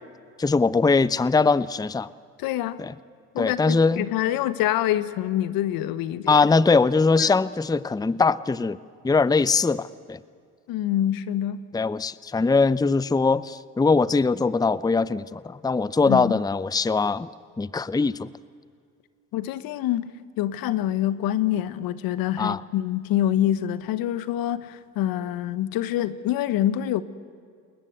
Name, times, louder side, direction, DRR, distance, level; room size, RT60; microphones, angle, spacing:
voice 1, 0.4-2.1 2.8-2.9 3.4-4.1 6.3-8.8 9.0-10.2 11.7-17.3 17.6-18.3 22.4-22.6, left 4 dB, 10° left, 19 dB, 0.7 m, -21 dB
voice 2, 2.4-2.8 3.3-6.5 7.2-7.3 10.7-11.6 16.1-16.4 19.3-20.1 20.4-27.0, left 12 dB, 70° left, 15 dB, 1.3 m, -26 dB
29.0 x 21.5 x 8.1 m, 2.2 s
hypercardioid pair, 60°, 36 cm